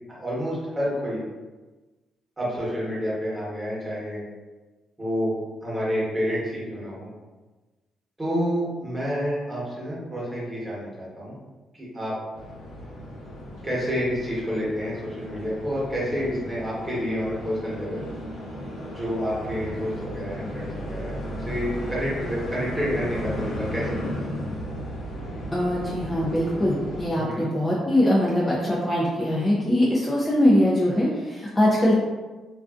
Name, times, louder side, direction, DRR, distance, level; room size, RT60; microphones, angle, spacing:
voice 1, 0.1-1.2 2.4-4.2 5.0-7.1 8.2-11.3 11.7-12.2 13.6-18.0 18.9-24.3 27.1-27.5, equal, 15° right, -7 dB, 1.1 m, -29 dB
sound 1, 12.3-27.1, equal, 75° left, 0.9 m, -35 dB
voice 2, 25.5-31.9, left 1 dB, 20° left, -5 dB, 0.4 m, -22 dB
2.5 x 2.2 x 2.4 m, 1.2 s
cardioid pair, 90°, 0 cm